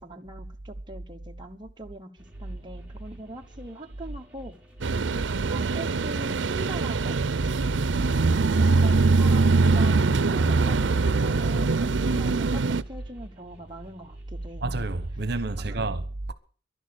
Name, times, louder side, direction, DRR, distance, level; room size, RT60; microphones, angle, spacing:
voice 1, 0.0-2.1 2.4-4.6 5.3-7.2 8.4-14.7 15.6-15.9, right 1 dB, 25° right, 1.0 m, -41 dB
sound 1, 2.2-15.7, equal, 5° right, 3.1 m, -53 dB
sound 2, 4.8-12.8, right 3 dB, 90° right, 0.6 m, -23 dB
voice 2, 14.6-16.3, right 2 dB, 60° right, 1.1 m, -29 dB
11.5 x 11.0 x 8.3 m
head